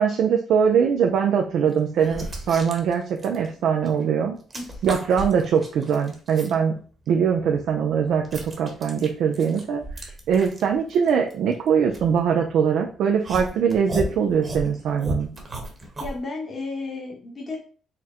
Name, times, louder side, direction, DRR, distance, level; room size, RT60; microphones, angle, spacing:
voice 1, 0.0-4.4 4.8-6.7 7.1-9.8 10.3-15.3, right 7 dB, 75° right, 3 dB, 0.5 m, -22 dB
sound 1, 0.9-1.1 1.7-4.0 4.3-6.6 7.0-12.7 13.2-16.2, right 1 dB, 30° right, 1.1 m, -35 dB
voice 2, 16.0-17.6, left 3 dB, 35° left, -2 dB, 1.2 m, -33 dB
4.4 x 2.1 x 3.7 m, 0.40 s
cardioid pair, 90°, 0 cm